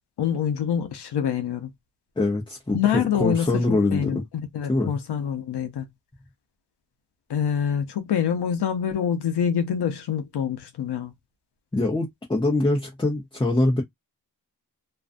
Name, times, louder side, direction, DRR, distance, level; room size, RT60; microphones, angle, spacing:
voice 1, 0.2-1.7 2.7-5.9 7.3-11.1, left 8 dB, 90° left, 0.6 m, -26 dB
voice 2, 2.2-4.2 4.7-5.0 11.7-13.8, left 2 dB, 10° left, 0.6 m, -24 dB
2.5 x 2.2 x 2.4 m
wide cardioid pair, 85°, 39 cm